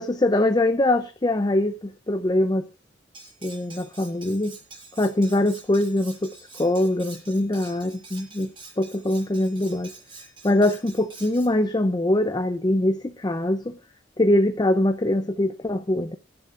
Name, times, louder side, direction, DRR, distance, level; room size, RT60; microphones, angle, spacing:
voice 1, 0.0-2.6 3.4-4.6 5.0-6.3 6.6-8.5 8.8-9.9 10.4-13.8 14.2-16.2, left 1 dB, 25° left, 0.6 m, -23 dB
Cutlery silverware, 3.1-11.5, right 3 dB, 30° right, 6.4 m, -46 dB
23.5 x 10.5 x 2.5 m
head